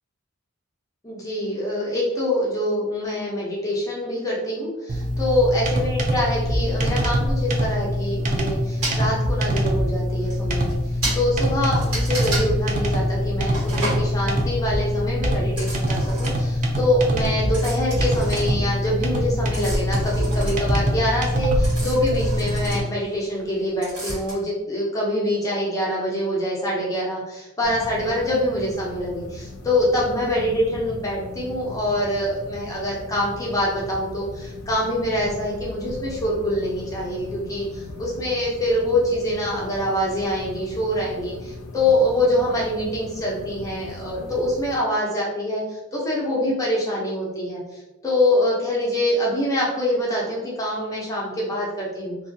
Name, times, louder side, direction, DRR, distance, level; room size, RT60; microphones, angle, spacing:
voice 1, 1.0-52.2, left 1 dB, 15° left, -5 dB, 0.6 m, -25 dB
sound 1, 4.9-22.8, equal, 35° right, 0.3 m, -24 dB
sound 2, 8.8-9.0 9.9-10.0 10.3-10.4 10.6-10.7 11.0-11.2 11.8-12.5 13.5-14.0 15.5-16.5 17.5-18.9 19.2-23.5 23.8-24.3, right 1 dB, 75° right, 1.4 m, -31 dB
sound 3, 27.6-44.8, left 2 dB, 65° left, 0.4 m, -38 dB
2.5 x 2.4 x 2.6 m, 1.0 s
head